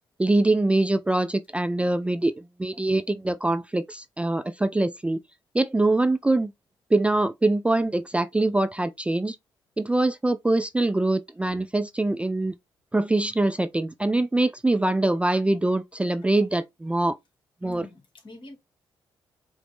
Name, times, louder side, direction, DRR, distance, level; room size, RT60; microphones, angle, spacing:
voice 1, 0.2-5.2 5.5-6.5 6.9-9.4 9.8-12.5 12.9-17.2 17.6-17.8, right 2 dB, 10° right, 0.3 m, -23 dB
voice 2, 17.6-18.6, left 2 dB, 55° left, 1.3 m, -45 dB
4.8 x 2.0 x 3.0 m
hypercardioid pair, 40°, 10 cm